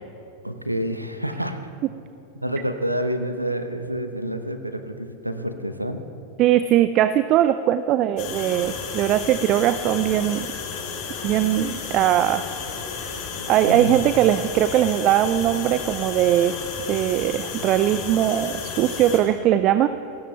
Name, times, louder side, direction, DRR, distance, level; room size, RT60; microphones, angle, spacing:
voice 1, 0.4-1.7 2.4-6.0 13.4-14.0, equal, 90° right, 8 dB, 0.9 m, -28 dB
voice 2, 6.4-10.5 11.2-12.4 13.5-16.6 16.9-19.9, right 12 dB, 35° right, 13 dB, 0.4 m, -20 dB
sound 1, 8.2-19.2, left 5 dB, 45° left, 3.1 m, -33 dB
29.0 x 16.0 x 2.3 m, 2.9 s
figure-of-eight pair, 90°, 0 cm